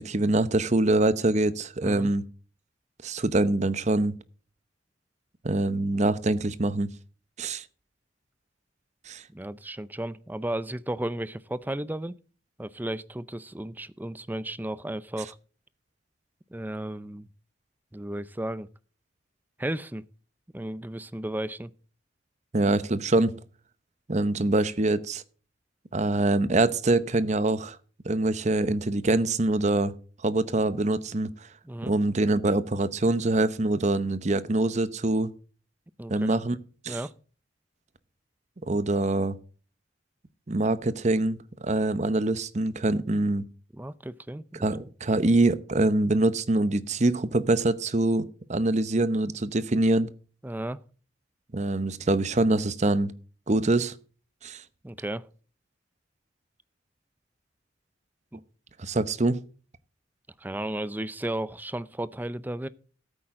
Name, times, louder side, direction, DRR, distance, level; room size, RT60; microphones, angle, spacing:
voice 1, 0.0-2.2 3.0-4.1 5.4-6.9 7.4-7.6 9.1-9.2 22.5-23.3 24.1-25.2 25.9-27.8 28.0-29.9 30.2-31.3 31.8-35.3 36.1-36.6 36.8-37.0 38.7-39.4 40.5-43.4 44.6-50.1 51.5-53.1 53.5-53.9 54.4-54.6 58.8-59.4, right 2 dB, 40° right, 0.8 m, -24 dB
voice 2, 9.3-12.2 12.6-15.4 16.5-17.3 17.9-18.7 19.6-20.0 20.5-21.7 31.6-31.9 36.0-36.4 36.9-37.1 43.7-44.6 50.4-50.8 54.8-55.3 58.3-58.4 60.4-62.7, right 1 dB, 10° right, 0.5 m, -34 dB
14.5 x 8.8 x 3.7 m
head